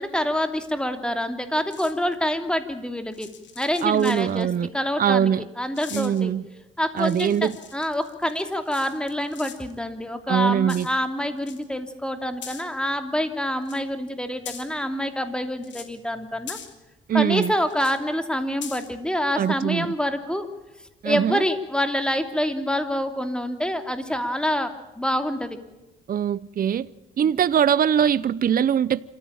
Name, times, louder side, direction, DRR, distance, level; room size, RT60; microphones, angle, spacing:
voice 1, 0.0-3.3 3.6-4.5 4.7-6.3 6.8-16.6 17.1-20.5 21.0-25.6 27.2-27.3, equal, 5° left, 2.9 m, -26 dB
sound 1, 1.7-2.1 3.1-4.4 5.7-6.2 7.0-9.7 10.7-11.0 11.4-11.6 12.4-12.6 13.6-13.8 14.4-14.8 15.6-16.0 16.5-16.7 17.7-18.0 18.6-18.9, left 8 dB, 65° left, 3.0 m, -41 dB
voice 2, 3.8-4.7 5.0-5.5 5.9-6.5 6.9-7.5 10.3-10.9 17.1-17.5 19.4-19.9 21.0-21.4 26.1-26.9 27.2-29.0, right 9 dB, 45° right, 0.7 m, -22 dB
27.0 x 14.5 x 8.8 m
cardioid pair, 90°, 20 cm